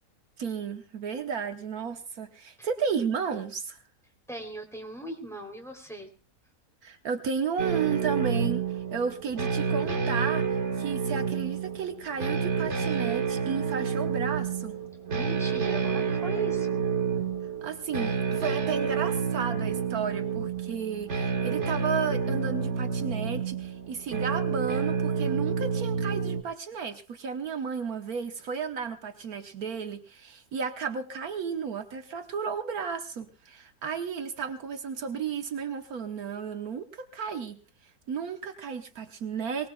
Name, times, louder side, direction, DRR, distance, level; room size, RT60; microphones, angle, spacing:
voice 1, 0.4-3.8 6.8-14.8 17.6-39.7, right 6 dB, 75° right, 6 dB, 1.5 m, -33 dB
voice 2, 4.3-6.1 15.1-16.8, right 2 dB, ahead, 1 dB, 3.1 m, -39 dB
sound 1, 7.6-26.4, right 6 dB, 50° right, 1.7 m, -29 dB
23.5 x 19.5 x 2.3 m, 0.33 s
omnidirectional pair, 1.6 m